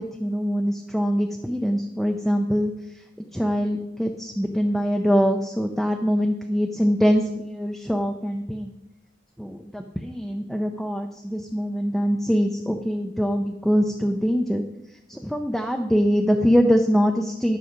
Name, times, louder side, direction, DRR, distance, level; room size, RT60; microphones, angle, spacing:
voice 1, 0.0-2.7 3.3-8.7 9.4-14.6 15.1-17.6, equal, ahead, 3 dB, 0.5 m, -23 dB
10.5 x 6.3 x 5.1 m, 0.88 s
head